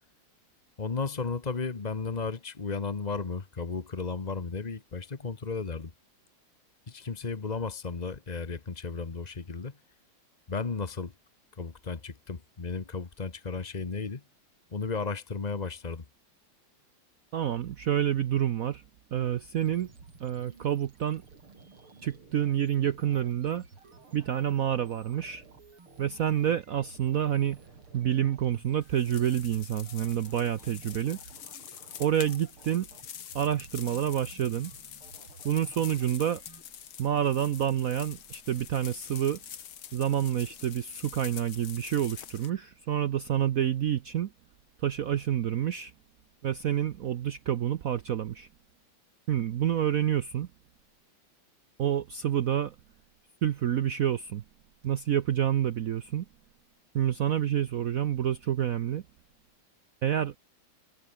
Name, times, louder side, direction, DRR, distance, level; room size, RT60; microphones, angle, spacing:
voice 1, 0.8-5.9 6.9-9.8 10.5-11.1 11.5-14.2 14.7-16.0, left 4 dB, 25° left, 1.0 m, -34 dB
voice 2, 17.3-18.8 19.1-19.9 20.2-21.2 22.0-23.7 24.1-25.4 26.0-27.6 27.9-31.2 32.0-32.9 33.3-34.7 35.4-36.4 37.0-39.4 39.9-44.3 44.8-45.9 46.4-48.5 49.3-50.5 51.8-52.7 53.4-54.4 54.8-56.2 56.9-59.0 60.0-60.3, right 10 dB, 70° right, 0.8 m, -28 dB
sound 1, 19.6-36.6, right 4 dB, 85° right, 5.4 m, -54 dB
sound 2, 28.8-42.5, left 9 dB, 75° left, 2.3 m, -46 dB
omnidirectional pair, 2.3 m